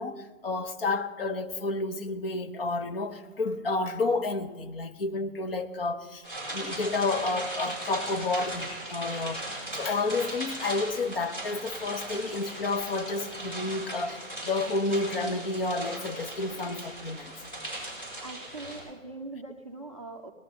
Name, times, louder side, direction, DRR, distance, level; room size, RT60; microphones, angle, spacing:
voice 1, 0.0-6.2 6.5-9.4 9.7-17.3, left 3 dB, 45° left, 0.8 m, -30 dB
sound 1, 6.2-18.8, right 1 dB, 10° left, 5.5 m, -38 dB
voice 2, 18.2-20.3, right 3 dB, 25° right, 0.4 m, -41 dB
19.0 x 12.5 x 4.1 m
hypercardioid pair, 165°, 39 cm